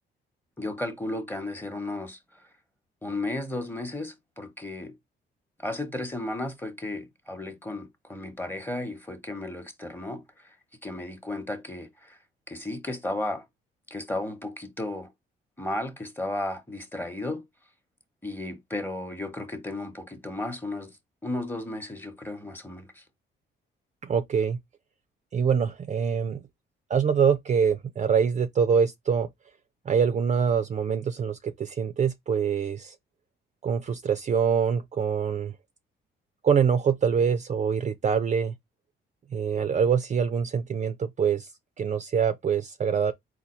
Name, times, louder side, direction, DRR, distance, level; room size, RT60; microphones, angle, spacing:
voice 1, 0.6-2.5 3.0-5.0 5.6-10.6 10.8-12.2 12.5-13.5 13.9-15.1 15.6-17.4 18.2-21.0 21.2-23.0, left 2 dB, 10° left, 1.0 m, -34 dB
voice 2, 24.0-24.6 25.3-26.4 26.9-29.3 29.9-32.9 33.6-35.5 36.4-38.5 39.3-41.5 41.8-43.1, right 7 dB, 35° right, 0.4 m, -24 dB
4.1 x 2.3 x 4.3 m
cardioid pair, 90°, 20 cm